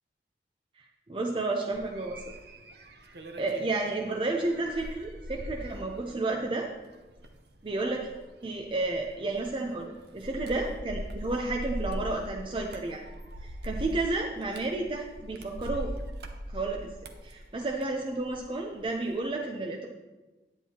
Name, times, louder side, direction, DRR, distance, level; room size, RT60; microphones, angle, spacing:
voice 1, 0.8-2.3 3.4-6.7 7.6-8.1 8.4-13.0 13.4-15.9 16.5-16.9 17.2-19.9, right 2 dB, 30° right, 1 dB, 0.5 m, -31 dB
sound 1, 1.7-18.5 18.8-19.2, equal, 65° right, 0.7 m, -41 dB
9.9 x 9.0 x 2.9 m, 1.2 s
head